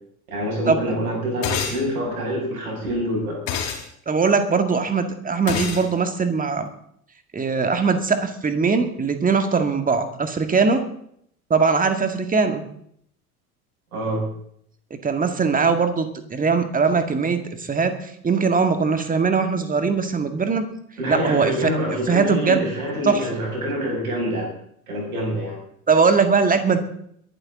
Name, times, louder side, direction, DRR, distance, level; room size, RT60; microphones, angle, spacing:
voice 1, 0.3-3.4 13.9-14.2 21.0-24.5 24.9-25.6, equal, 75° right, -1 dB, 6.6 m, -26 dB
sound 1, 1.4-1.8 3.5-3.8 5.5-5.8, left 7 dB, 55° left, 3.9 m, -26 dB
voice 2, 4.1-6.7 7.3-10.8 11.5-12.6 15.0-20.7 21.1-22.7 23.0-23.2 25.9-26.8, right 5 dB, 20° right, 8 dB, 2.0 m, -21 dB
22.0 x 12.0 x 3.8 m, 0.68 s
figure-of-eight pair, 75°, 44 cm